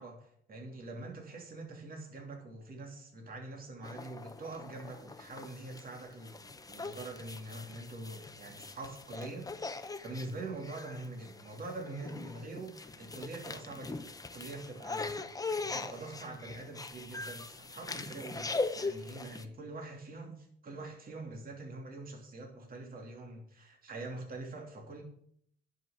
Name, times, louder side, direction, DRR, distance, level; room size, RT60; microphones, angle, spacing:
voice 1, 0.0-25.0, right 2 dB, 45° right, 1 dB, 3.0 m, -44 dB
sound 1, 3.8-19.4, left 3 dB, 20° left, 0.9 m, -41 dB
10.5 x 6.2 x 7.4 m, 0.65 s
cardioid pair, 90°, 20 cm